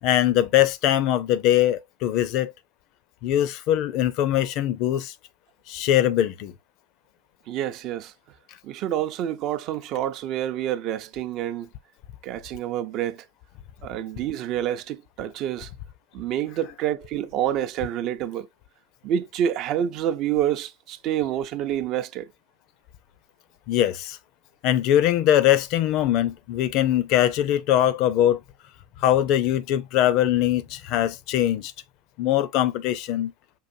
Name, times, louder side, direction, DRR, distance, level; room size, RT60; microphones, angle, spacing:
voice 1, 0.0-2.5 3.2-5.1 5.7-6.5 23.7-24.2 24.6-28.4 29.0-31.7 32.2-33.3, left 12 dB, 55° left, 0.5 m, -22 dB
voice 2, 7.5-8.1 8.6-11.7 12.2-13.3 13.8-15.7 16.1-18.5 19.0-22.3, right 10 dB, 55° right, 0.5 m, -28 dB
5.5 x 2.6 x 2.6 m
hypercardioid pair, 90°, 0 cm